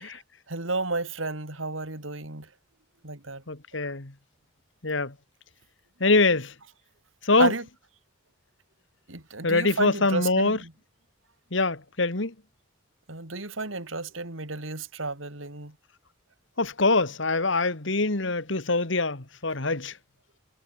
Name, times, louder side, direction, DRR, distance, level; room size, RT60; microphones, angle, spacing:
voice 1, 0.5-2.5 3.0-3.4 3.8-3.9 7.4-7.7 9.1-10.7 13.1-15.7, right 3 dB, 85° right, 4.0 m, -32 dB
voice 2, 3.5-4.1 4.8-5.1 6.0-6.5 7.2-7.5 9.4-10.6 11.5-12.3 16.6-19.9, left 3 dB, 70° left, 2.1 m, -24 dB
head